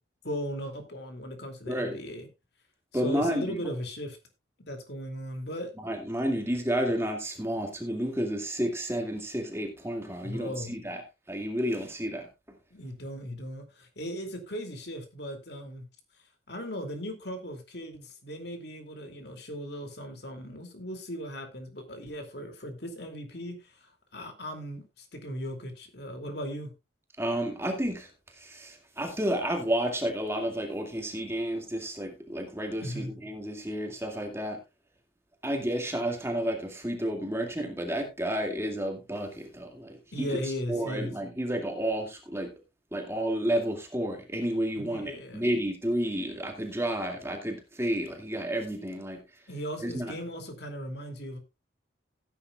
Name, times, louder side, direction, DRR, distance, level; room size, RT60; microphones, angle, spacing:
voice 1, 0.2-2.3 2.9-4.2 4.7-5.7 10.2-10.7 12.7-15.8 16.5-26.7 32.8-33.1 40.1-41.1 44.8-45.4 49.5-51.4, equal, 60° left, 2.6 m, -37 dB
voice 2, 1.7-2.0 2.9-3.6 5.8-11.0 11.3-12.3 27.2-28.1 28.4-34.6 35.4-42.5 42.9-49.2 49.8-50.1, right 1 dB, 15° right, 2.2 m, -31 dB
16.5 x 9.6 x 2.4 m
head